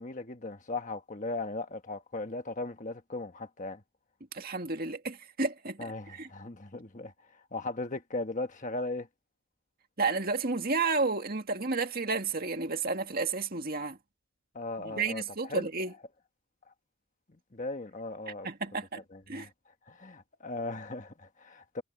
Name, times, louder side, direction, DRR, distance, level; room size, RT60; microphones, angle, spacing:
voice 1, 0.0-3.8 5.8-9.1 14.5-15.7 17.5-18.5 19.1-21.8, left 2 dB, 35° left, 1.3 m, -38 dB
voice 2, 4.3-6.3 10.0-14.0 14.8-15.9 18.4-19.0 19.3-19.5, right 4 dB, 40° right, 2.2 m, -31 dB
head